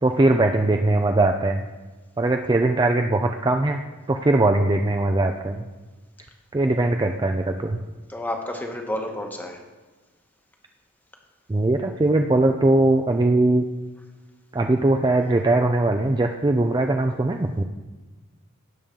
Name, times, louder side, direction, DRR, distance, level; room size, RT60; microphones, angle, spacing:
voice 1, 0.0-1.7 2.2-3.8 4.1-5.6 6.5-7.8 11.5-13.6 14.5-17.6, right 2 dB, 20° right, 5 dB, 0.4 m, -20 dB
voice 2, 8.1-9.6, left 1 dB, 10° left, 3 dB, 1.1 m, -30 dB
17.0 x 7.1 x 3.7 m, 1.3 s
head